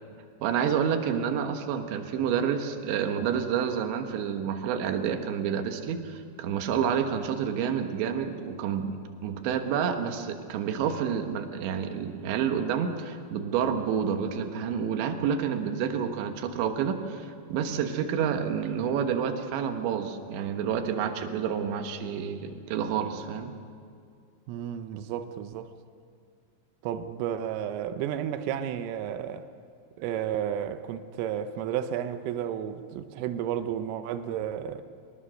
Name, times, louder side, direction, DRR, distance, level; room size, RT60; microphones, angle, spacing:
voice 1, 0.4-23.5, right 7 dB, 70° right, 3.5 m, -29 dB
voice 2, 24.5-25.7 26.8-29.5 30.0-34.8, right 9 dB, 90° right, 3.5 m, -32 dB
24.0 x 20.0 x 6.4 m
omnidirectional pair, 5.7 m